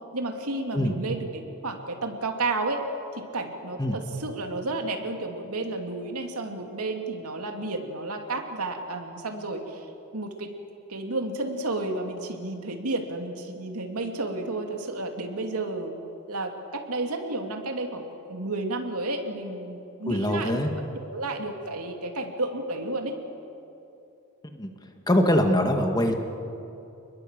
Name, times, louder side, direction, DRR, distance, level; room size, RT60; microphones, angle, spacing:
voice 1, 0.1-2.9 3.1-9.9 10.1-10.5 10.9-15.9 16.3-20.6 21.0-23.2, right 2 dB, 80° right, 4 dB, 2.8 m, -32 dB
voice 2, 20.1-20.7 24.6-24.7 25.1-26.1, left 1 dB, 20° left, 4 dB, 1.8 m, -23 dB
29.0 x 21.0 x 7.6 m, 2.8 s
head